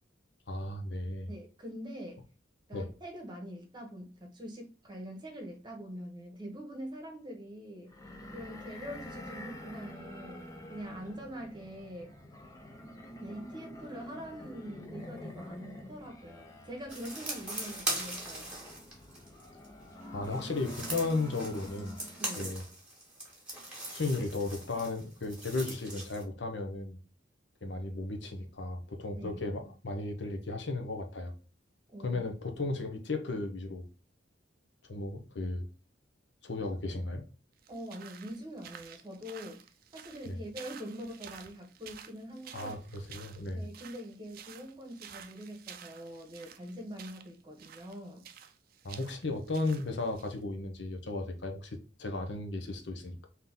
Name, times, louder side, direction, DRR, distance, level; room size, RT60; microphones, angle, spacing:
voice 1, 0.5-1.3 2.7-2.9 20.1-22.0 22.4-22.6 23.9-27.0 27.6-31.3 32.0-33.8 34.9-35.7 36.4-37.2 40.3-40.4 42.5-43.7 48.8-53.3, left 2 dB, 70° left, 0.7 m, -35 dB
voice 2, 1.3-2.2 2.7-7.9 8.3-12.1 13.2-18.5 22.2-22.5 29.2-29.4 31.9-32.2 37.7-39.6 39.9-42.8 43.5-48.2, equal, 25° right, 1.0 m, -44 dB
sound 1, 7.9-22.4, left 1 dB, 20° left, 0.6 m, -47 dB
sound 2, 16.9-19.7 20.2-26.2, right 1 dB, 5° right, 1.5 m, -40 dB
sound 3, 37.6-50.4, right 8 dB, 50° right, 0.4 m, -51 dB
3.9 x 2.8 x 3.5 m
head